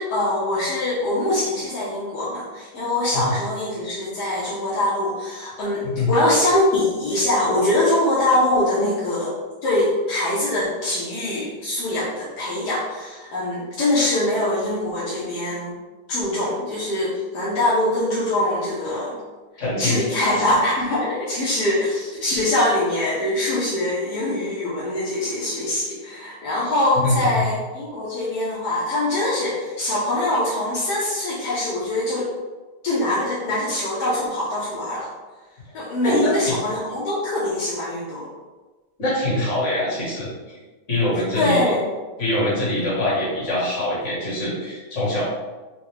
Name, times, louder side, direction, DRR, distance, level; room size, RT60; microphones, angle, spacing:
voice 1, 0.0-9.3 9.6-15.8 16.1-19.2 19.8-32.3 32.8-35.1 35.7-38.3 41.3-41.8, left 1 dB, 75° left, -7 dB, 1.3 m, -23 dB
voice 2, 19.6-20.0 27.0-27.4 36.0-36.5 39.0-40.3 40.9-41.6 42.2-45.3, left 1 dB, 45° left, -8 dB, 1.7 m, -23 dB
4.8 x 2.1 x 3.3 m, 1.3 s
omnidirectional pair, 1.8 m